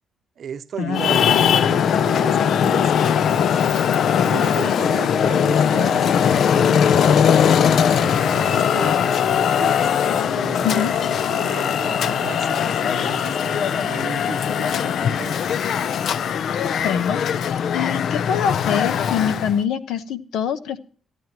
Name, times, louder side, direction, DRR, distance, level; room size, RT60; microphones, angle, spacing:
voice 1, 0.4-3.6 4.2-7.3 7.7-9.9 10.3-15.4, right 7 dB, 60° right, 10 dB, 0.7 m, -35 dB
Traffic noise roadway noise, 0.9-19.6, left 8 dB, 65° left, 0.4 m, -20 dB
voice 2, 16.6-20.8, left 8 dB, 80° left, 12 dB, 0.9 m, -25 dB
15.5 x 9.2 x 2.9 m, 0.42 s
cardioid pair, 90°, 0 cm